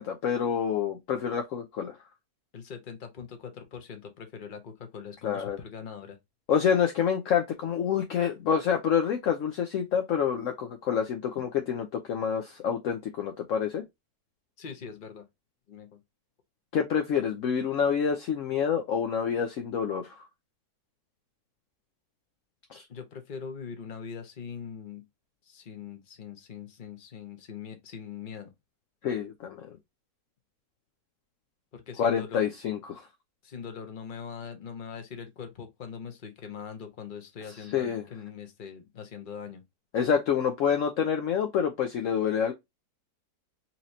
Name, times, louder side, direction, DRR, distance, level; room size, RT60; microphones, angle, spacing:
voice 1, 0.0-2.0 5.2-5.6 6.5-13.8 16.7-20.2 22.7-22.8 29.0-29.7 32.0-33.1 37.7-38.0 39.9-42.5, left 7 dB, 65° left, 0.9 m, -27 dB
voice 2, 2.5-6.2 14.6-15.2 15.7-15.9 22.9-25.0 25.5-28.5 31.7-32.5 33.4-39.6, left 7 dB, 35° left, 1.0 m, -42 dB
4.2 x 3.0 x 2.6 m
omnidirectional pair, 1.7 m